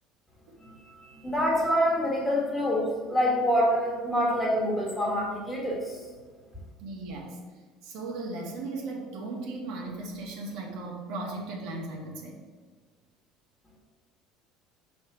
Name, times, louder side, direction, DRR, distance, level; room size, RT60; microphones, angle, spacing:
voice 1, 0.6-6.0, equal, 10° left, -2 dB, 1.6 m, -26 dB
voice 2, 6.8-7.4 7.8-12.4, right 2 dB, 70° right, -1 dB, 1.5 m, -37 dB
5.5 x 4.1 x 6.0 m, 1.5 s
cardioid pair, 145°, 0 cm